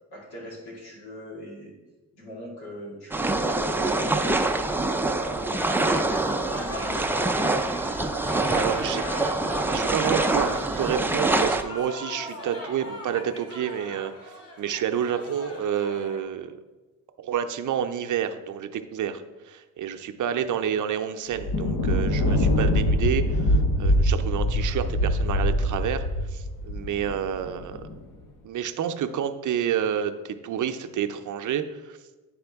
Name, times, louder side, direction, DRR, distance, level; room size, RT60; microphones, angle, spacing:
voice 1, 0.1-1.7 2.1-4.4 4.7-5.7 6.1-7.4 20.2-20.4 24.6-24.9, equal, 85° left, -3 dB, 2.2 m, -39 dB
sound 1, 3.1-11.6, right 2 dB, 5° right, 0.4 m, -25 dB
sound 2, 5.6-16.2, left 1 dB, 40° left, 1.6 m, -39 dB
voice 2, 8.2-9.0 9.6-16.6 17.2-26.0 26.3-27.8 28.4-32.0, right 9 dB, 55° right, 8 dB, 0.6 m, -29 dB
Thunder, 21.3-28.0, left 1 dB, 60° left, 0.8 m, -24 dB
9.7 x 3.6 x 3.5 m, 1.2 s
supercardioid pair, 70°, 36 cm